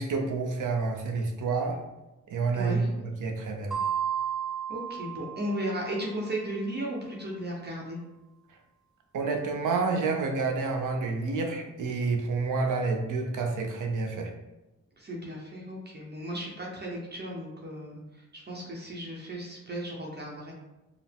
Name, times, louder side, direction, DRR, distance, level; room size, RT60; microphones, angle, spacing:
voice 1, 0.0-1.8 2.3-3.7 9.1-14.3, right 4 dB, 85° right, 2 dB, 0.7 m, -29 dB
voice 2, 2.5-3.1 4.7-8.0 15.0-18.0 18.3-20.5, right 1 dB, 35° right, -3 dB, 0.8 m, -35 dB
sound 1, 3.7-6.2, right 8 dB, ahead, 0.6 m, -33 dB
4.8 x 2.0 x 3.4 m, 1.0 s
wide cardioid pair, 105°, 31 cm